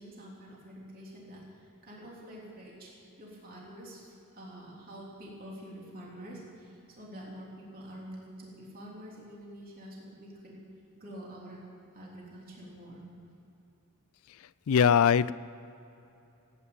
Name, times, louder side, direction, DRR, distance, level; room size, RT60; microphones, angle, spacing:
voice 1, 0.0-2.9 3.2-10.6 10.9-11.6 11.9-13.0, equal, 40° right, -4 dB, 3.4 m, -47 dB
voice 2, 14.7-15.3, left 7 dB, 65° left, 18 dB, 0.4 m, -21 dB
17.0 x 9.2 x 8.6 m, 2.8 s
head